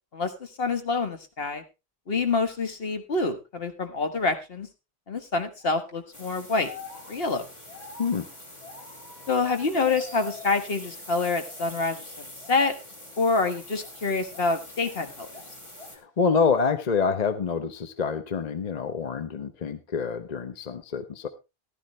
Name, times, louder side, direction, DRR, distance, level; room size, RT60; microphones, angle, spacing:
voice 1, 0.6-1.6 2.1-4.7 5.1-6.7 7.1-7.4 9.3-12.0 12.5-12.7 13.2-15.3, left 3 dB, 65° left, 8 dB, 1.6 m, -26 dB
sound 1, 5.6-5.9 6.5-10.9 11.2-11.9 12.4-12.6 13.4-15.0 15.3-16.1, left 4 dB, 80° left, 2.6 m, -47 dB
sound 2, 6.1-16.0, left 1 dB, 30° left, 2.1 m, -45 dB
voice 2, 15.9-21.3, left 5 dB, 45° left, 10 dB, 0.8 m, -27 dB
15.0 x 12.0 x 3.1 m, 0.26 s
omnidirectional pair, 1.1 m